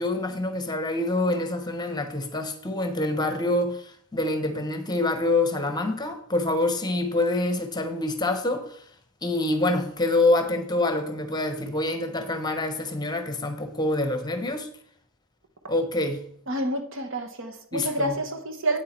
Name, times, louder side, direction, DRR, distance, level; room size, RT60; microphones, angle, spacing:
voice 1, 0.0-8.8 9.2-14.7 15.7-16.3 17.7-18.1, left 2 dB, 20° left, 1.0 m, -26 dB
voice 2, 16.5-18.8, right 1 dB, 60° right, 1.2 m, -29 dB
8.9 x 8.4 x 4.4 m
head